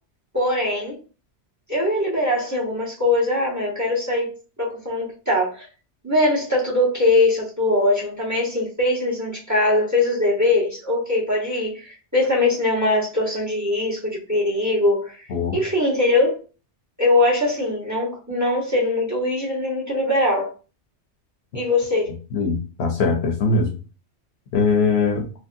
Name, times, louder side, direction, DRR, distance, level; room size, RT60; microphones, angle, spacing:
voice 1, 0.3-1.0 1.7-4.3 4.6-5.7 6.0-15.2 15.5-16.4 17.0-20.5 21.5-22.1, left 2 dB, 15° right, 0.9 m, -21 dB
voice 2, 22.3-23.7 24.5-25.3, left 4 dB, 65° left, 0.8 m, -21 dB
3.0 x 2.6 x 2.5 m
omnidirectional pair, 1.2 m